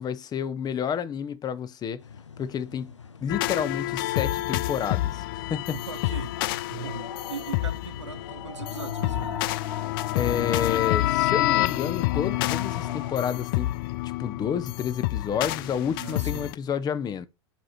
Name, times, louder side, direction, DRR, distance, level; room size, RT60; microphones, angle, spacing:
voice 1, 0.0-2.0 2.4-2.9 3.2-5.8 10.1-13.7 14.0-17.3, left 8 dB, 25° left, 1.0 m, -30 dB
sound 1, 2.0-13.1, left 5 dB, 80° left, 0.8 m, -43 dB
sound 2, 3.3-16.5, left 17 dB, 50° left, 0.4 m, -28 dB
voice 2, 5.7-6.4 6.7-9.6 15.9-16.5, right 6 dB, 80° right, 0.8 m, -39 dB
12.0 x 5.1 x 4.3 m
figure-of-eight pair, 85°, 15 cm